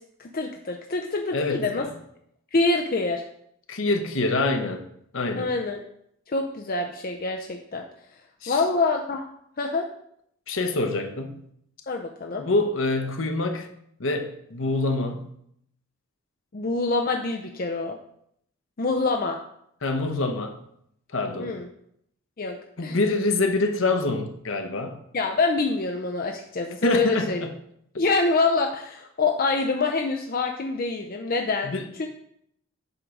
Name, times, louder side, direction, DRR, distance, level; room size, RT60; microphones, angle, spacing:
voice 1, 0.2-1.9 2.5-3.2 5.4-5.8 6.3-7.8 8.5-9.2 9.6-9.9 11.9-12.5 16.5-18.0 18.8-19.4 21.4-21.7 22.4-23.0 25.1-27.5 28.0-31.7 32.0-32.1, left 3 dB, 40° left, 3 dB, 0.5 m, -26 dB
voice 2, 1.3-1.9 3.7-4.8 5.1-5.5 8.4-8.6 10.5-11.4 12.4-13.7 14.0-15.3 19.8-20.6 21.1-21.5 22.8-25.0 26.8-27.5 31.6-31.8, left 2 dB, 60° left, 5 dB, 0.9 m, -26 dB
7.9 x 3.8 x 5.9 m, 0.71 s
head